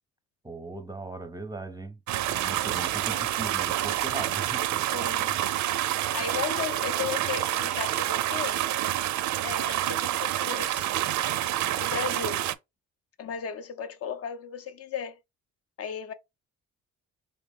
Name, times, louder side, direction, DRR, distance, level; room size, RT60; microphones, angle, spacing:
voice 1, 0.4-4.8 5.2-5.4, right 3 dB, 15° right, 0.5 m, -39 dB
sound 1, 2.1-12.6, right 13 dB, 70° right, 0.5 m, -28 dB
voice 2, 4.9-5.3 6.1-8.6 9.4-10.9 11.8-12.4 13.2-15.2 15.8-16.1, left 7 dB, 50° left, 0.6 m, -35 dB
3.4 x 2.9 x 3.5 m
cardioid pair, 90°, 30 cm